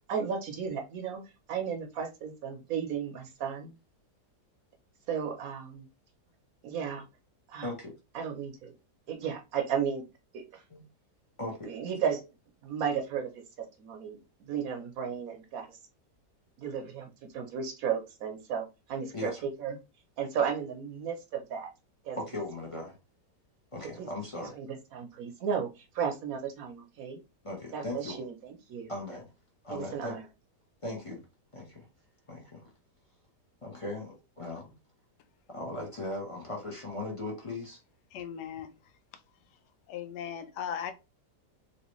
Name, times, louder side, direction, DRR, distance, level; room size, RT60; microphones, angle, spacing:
voice 1, 0.1-1.2 1.5-3.7 5.1-5.9 6.6-7.1 7.5-7.7 8.1-8.7 9.1-10.0 10.3-10.6 11.6-12.2 12.6-14.2 14.5-15.8 16.6-19.8 20.2-21.7 22.0-22.2 24.0-24.1 24.4-27.2 27.7-28.9 29.7-30.2, right 7 dB, 65° right, 1.0 m, -34 dB
voice 2, 7.6-8.0 10.7-10.8 11.4-11.7 19.1-19.4 22.2-23.0 23.7-24.6 27.4-28.3 28.9-29.3 29.6-30.2 30.8-31.2 31.5-31.9 32.3-32.6 33.6-34.8 35.5-37.8, left 2 dB, 35° left, 0.5 m, -38 dB
voice 3, 38.1-38.7 39.9-40.9, left 8 dB, 85° left, 1.2 m, -37 dB
3.1 x 2.8 x 3.0 m
omnidirectional pair, 1.8 m